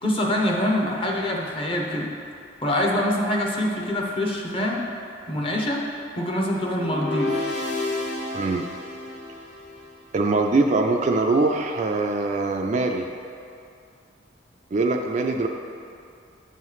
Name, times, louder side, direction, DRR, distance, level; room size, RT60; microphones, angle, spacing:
voice 1, 0.0-2.1 2.6-4.9 5.3-5.8 6.2-7.4, left 1 dB, 25° left, -1 dB, 0.7 m, -25 dB
sound 1, 6.7-10.0, left 2 dB, 55° left, 1.0 m, -30 dB
voice 2, 8.3-8.6 10.1-13.1 14.7-15.5, right 3 dB, 40° right, 3 dB, 0.3 m, -22 dB
8.3 x 3.1 x 5.6 m, 2.5 s
head